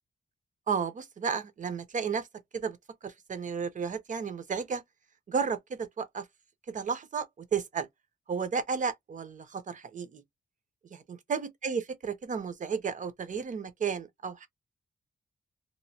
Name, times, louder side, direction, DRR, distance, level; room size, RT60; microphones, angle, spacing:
voice 1, 0.7-2.3 2.5-2.8 3.0-4.8 5.3-6.3 6.7-7.9 8.3-10.2 10.9-14.5, right 6 dB, 50° right, 0.8 m, -33 dB
3.0 x 2.5 x 2.8 m
wide cardioid pair, 110°, 17 cm